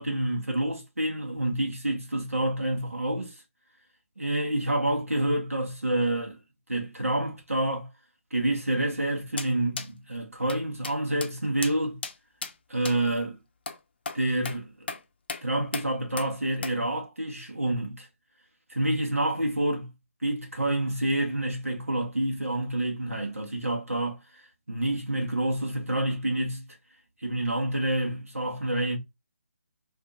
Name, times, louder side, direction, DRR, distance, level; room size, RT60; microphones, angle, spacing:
voice 1, 0.0-3.4 4.2-6.4 6.7-7.9 8.3-12.0 12.7-13.4 14.1-14.9 15.4-18.1 18.7-19.9 20.2-24.2 24.7-26.7 27.2-29.0, right 1 dB, 85° right, 1.0 m, -28 dB
sound 1, 9.4-9.5 9.8-9.9 10.5-10.6 10.8-11.0 11.2-11.3 11.6-11.7 12.0-12.1 12.4-12.5 12.8-13.0 13.7-13.8 14.1-14.2 14.4-14.6 14.9-15.0 15.3-15.4 15.7-15.9 16.2-16.3 16.6-16.8, left 5 dB, 45° left, 0.5 m, -35 dB
2.6 x 2.5 x 3.5 m
figure-of-eight pair, 145°, 7 cm